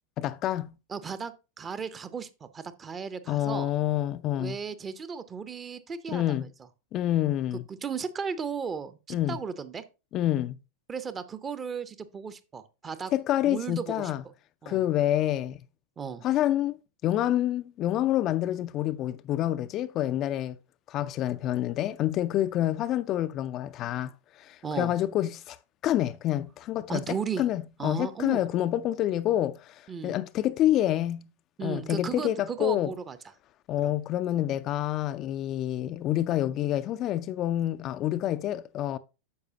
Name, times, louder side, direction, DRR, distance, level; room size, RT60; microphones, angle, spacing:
voice 1, 0.2-0.7 3.3-4.6 6.1-6.5 6.9-7.6 9.1-9.4 10.1-10.6 13.1-14.2 14.7-15.6 16.2-16.8 17.0-20.6 20.9-25.6 25.8-31.3 31.6-32.9 33.7-39.0, left 13 dB, 35° left, 0.4 m, -28 dB
voice 2, 0.9-3.7 4.4-6.5 7.7-9.8 10.9-13.1 13.4-14.1 14.6-14.8 16.0-16.2 24.6-24.9 26.9-27.4 27.8-28.5 29.9-30.2 31.6-33.2 33.8-33.9, right 6 dB, 20° right, 0.7 m, -35 dB
9.6 x 6.6 x 2.7 m
figure-of-eight pair, 90°, 0 cm